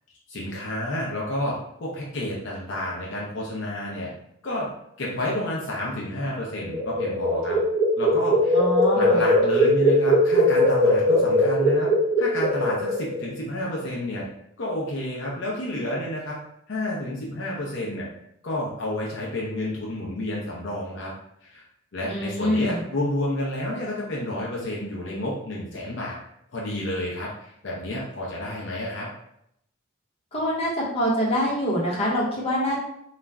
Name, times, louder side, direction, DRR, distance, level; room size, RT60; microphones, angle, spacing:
voice 1, 0.3-4.1 4.4-4.7 5.0-7.6 8.0-8.6 8.9-11.9 12.2-14.3 14.6-16.4 16.7-18.1 18.4-21.1 21.4-21.6 21.9-26.2 26.5-29.1, left 1 dB, 60° left, -4 dB, 0.5 m, -30 dB
sound 1, 6.5-13.2, equal, 20° right, 1.0 m, -20 dB
voice 2, 8.5-9.2 22.1-22.8 30.3-32.8, equal, 30° left, -6 dB, 0.8 m, -25 dB
2.3 x 2.0 x 3.4 m, 0.76 s
head